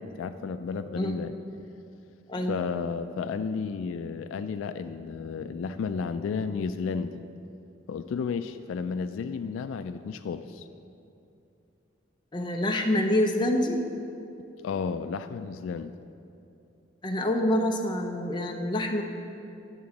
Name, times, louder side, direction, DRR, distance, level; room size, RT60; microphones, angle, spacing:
voice 1, 0.0-1.4 2.5-7.2 7.9-10.7 14.6-15.9, left 5 dB, 80° left, 10 dB, 0.3 m, -32 dB
voice 2, 12.3-13.8 17.0-19.0, left 1 dB, 25° left, 2 dB, 0.6 m, -26 dB
10.5 x 3.8 x 7.1 m, 2.7 s
head